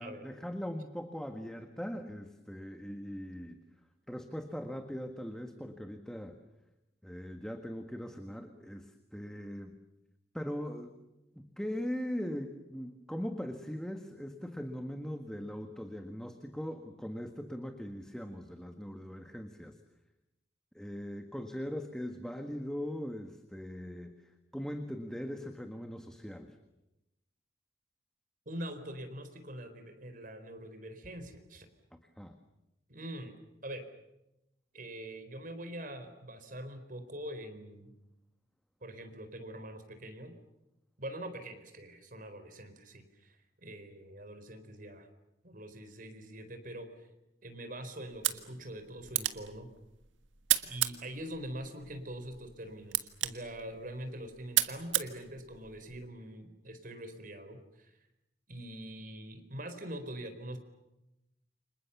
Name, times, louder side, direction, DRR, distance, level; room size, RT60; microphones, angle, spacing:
voice 1, 0.0-3.6 4.1-6.3 7.0-9.7 10.3-10.9 11.3-19.7 20.7-26.6 32.2-32.3, equal, 5° left, 5 dB, 1.6 m, -40 dB
voice 2, 28.5-31.7 32.9-33.4 33.6-33.8 34.7-37.9 38.8-40.3 41.0-45.1 45.4-47.1 47.4-49.7 50.6-57.9 58.5-60.6, right 1 dB, 45° right, 8 dB, 4.3 m, -44 dB
sound 1, 48.1-56.1, right 13 dB, 85° right, 1.6 m, -35 dB
29.5 x 26.5 x 7.1 m, 0.92 s
head